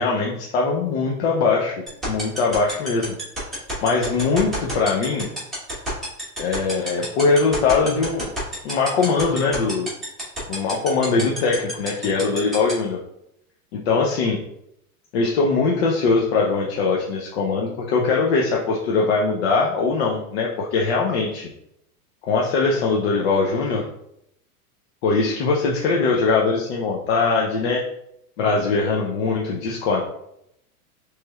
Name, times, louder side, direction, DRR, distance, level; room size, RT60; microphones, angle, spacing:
voice 1, 0.0-1.8 2.0-3.2 3.8-5.3 6.4-8.3 8.6-9.9 10.5-13.0 13.7-14.4 15.1-21.5 22.2-23.9 25.0-27.8 28.4-30.0, left 4 dB, 45° left, -1 dB, 0.6 m, -21 dB
sound 1, 1.9-12.7, right 1 dB, ahead, 1.2 m, -29 dB
5.9 x 3.1 x 2.3 m, 0.79 s
supercardioid pair, 165°, 46 cm